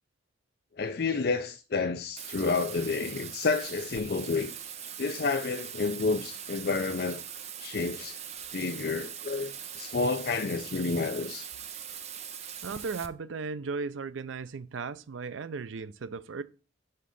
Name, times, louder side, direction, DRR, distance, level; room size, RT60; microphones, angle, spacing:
voice 1, 0.8-4.5 5.0-7.2 7.6-8.2 8.5-11.5, left 4 dB, 55° left, 0.4 m, -30 dB
Bathtub (filling or washing), 2.2-13.1, right 8 dB, 35° right, 0.5 m, -41 dB
voice 2, 12.6-16.4, right 4 dB, 85° right, 0.5 m, -36 dB
6.6 x 3.8 x 5.3 m
head